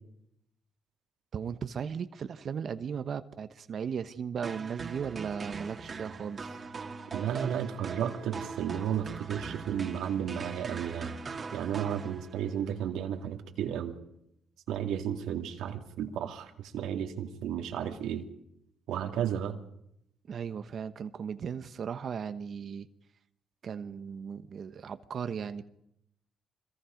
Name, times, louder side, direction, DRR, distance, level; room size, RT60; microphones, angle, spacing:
voice 1, 1.3-6.6 20.3-22.9 23.6-25.6, right 7 dB, 55° right, 1.0 m, -36 dB
sound 1, 4.4-12.6, right 4 dB, 40° right, 2.4 m, -41 dB
voice 2, 7.1-11.2 11.5-13.9 14.7-18.3 18.9-19.6, right 9 dB, 85° right, 2.3 m, -33 dB
25.5 x 22.5 x 5.2 m
cardioid pair, 90°, 0 cm